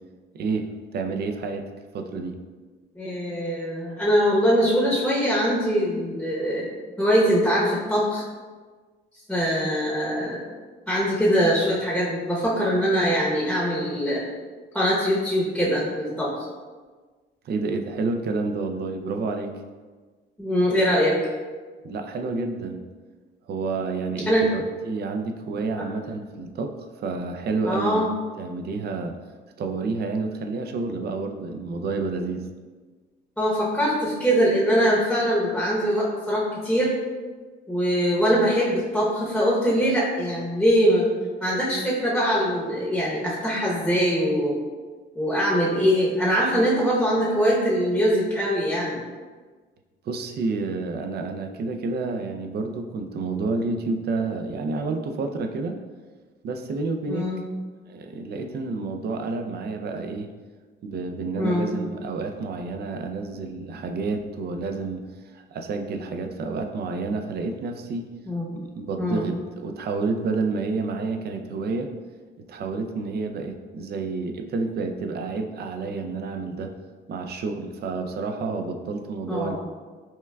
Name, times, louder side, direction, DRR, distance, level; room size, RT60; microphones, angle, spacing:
voice 1, 0.3-1.7 1.9-2.4 17.5-19.5 21.8-22.8 23.5-28.0 28.4-29.1 29.6-32.5 50.1-55.8 56.4-57.3 57.9-60.3 60.8-65.0 65.3-68.0 68.5-71.9 72.5-76.7 77.1-79.6, right 3 dB, 55° right, 5 dB, 0.4 m, -29 dB
voice 2, 3.0-6.7 7.0-8.2 9.3-10.4 10.9-14.2 14.7-16.3 20.4-21.2 24.3-24.5 25.8-25.9 27.6-28.1 33.4-36.9 37.7-41.1 41.4-44.6 45.1-49.0 57.1-57.4 61.4-61.7 68.3-68.5 68.9-69.3 79.3-79.6, equal, 5° left, -6 dB, 0.8 m, -22 dB
5.5 x 2.2 x 2.2 m, 1.4 s
cardioid pair, 90°, 20 cm